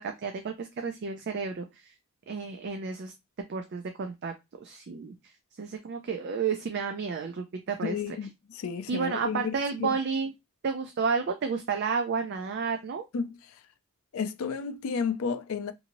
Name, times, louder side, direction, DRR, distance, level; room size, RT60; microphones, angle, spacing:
voice 1, 0.0-1.9 2.3-3.1 3.5-4.3 4.6-5.3 5.6-8.0 8.9-10.3 10.6-13.1, right 5 dB, 50° right, 0.3 m, -31 dB
voice 2, 7.8-9.9 13.1-13.4 14.1-15.7, left 5 dB, 65° left, 0.4 m, -32 dB
2.6 x 2.6 x 2.9 m
head